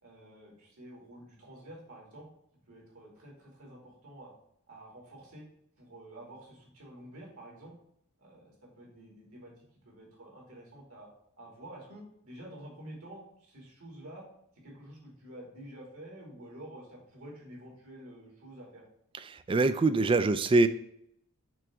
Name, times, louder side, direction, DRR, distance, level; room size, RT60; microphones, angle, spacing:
voice 1, 0.0-2.3 2.7-4.3 4.7-5.5 5.8-7.7 8.2-9.5 9.9-11.1 11.4-14.3 14.5-18.8, right 1 dB, 65° right, -2 dB, 2.6 m, -49 dB
voice 2, 19.3-20.7, right 3 dB, 25° right, 12 dB, 0.3 m, -24 dB
6.1 x 3.5 x 5.9 m, 0.74 s
head